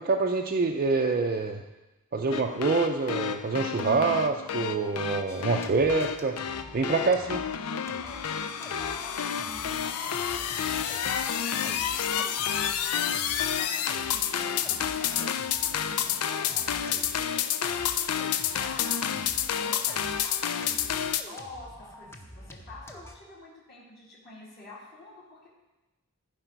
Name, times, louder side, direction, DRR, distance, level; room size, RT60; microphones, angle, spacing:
voice 1, 0.0-1.6 2.1-6.4 6.7-7.4, right 4 dB, 40° right, 1 dB, 0.5 m, -26 dB
sound 1, 2.3-21.2, left 8 dB, 85° left, 0.5 m, -30 dB
sound 2, 5.3-7.6 7.9-19.6 19.9-23.1, left 1 dB, 10° left, 0.7 m, -47 dB
voice 2, 6.9-7.3 8.0-25.5, left 2 dB, 45° left, -7 dB, 2.5 m, -48 dB
15.0 x 5.0 x 4.5 m, 1.1 s
head